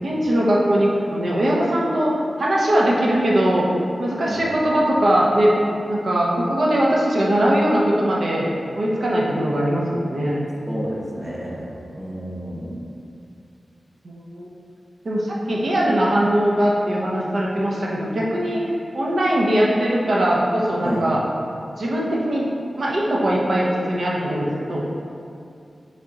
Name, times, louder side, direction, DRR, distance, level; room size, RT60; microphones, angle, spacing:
voice 1, 0.0-3.7 4.0-5.6 5.9-8.5 8.7-10.4 14.0-14.5 15.0-18.6 18.9-21.2 21.8-22.5 22.8-24.9, right 1 dB, 70° right, -4 dB, 0.7 m, -20 dB
voice 2, 10.7-12.8 20.8-21.0, equal, 15° right, -4 dB, 0.8 m, -30 dB
3.9 x 3.4 x 3.7 m, 2.5 s
wide cardioid pair, 75°, 0 cm